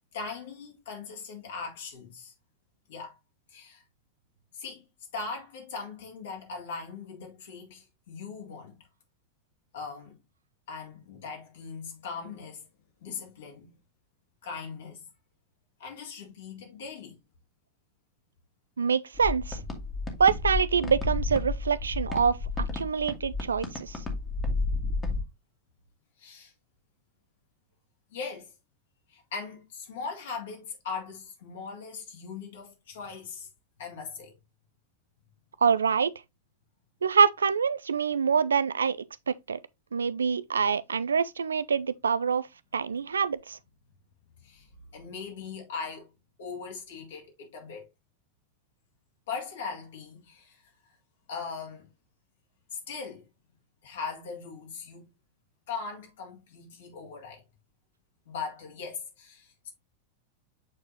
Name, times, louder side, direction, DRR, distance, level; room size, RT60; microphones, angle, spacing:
voice 1, 0.1-2.3 2.9-3.2 3.5-3.8 4.5-4.8 5.1-8.8 9.7-10.2 10.7-12.7 13.0-13.7 14.4-15.0 15.8-17.2 26.2-26.5 28.1-28.5 29.1-33.5 33.8-34.3 44.4-46.1 46.4-47.9 49.3-50.6 51.3-51.9 52.7-53.3 53.8-55.1 55.7-57.4 58.3-59.7, left 5 dB, 60° left, 2.1 m, -39 dB
voice 2, 18.8-19.6 20.2-22.4 22.7-24.0 35.6-36.1 37.0-39.0 39.3-39.6 39.9-42.5 42.7-43.6, right 6 dB, 70° right, 0.4 m, -25 dB
sound 1, 19.1-25.2, left 3 dB, 20° left, 1.7 m, -32 dB
7.7 x 4.5 x 2.8 m
figure-of-eight pair, 90°, 0 cm